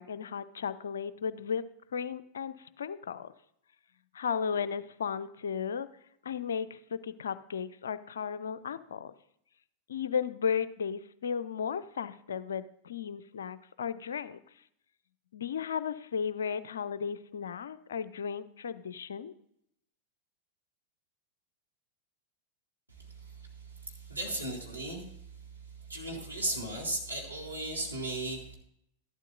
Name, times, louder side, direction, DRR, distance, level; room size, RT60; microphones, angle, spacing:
voice 1, 0.0-1.6 1.9-3.3 4.1-5.9 6.2-9.1 9.9-14.4 15.3-19.3, left 7 dB, 65° left, 16 dB, 0.5 m, -35 dB
voice 2, 23.4-25.1 25.9-28.6, right 2 dB, 90° right, -2 dB, 2.4 m, -36 dB
13.5 x 12.0 x 2.6 m, 0.73 s
figure-of-eight pair, 90°, 0 cm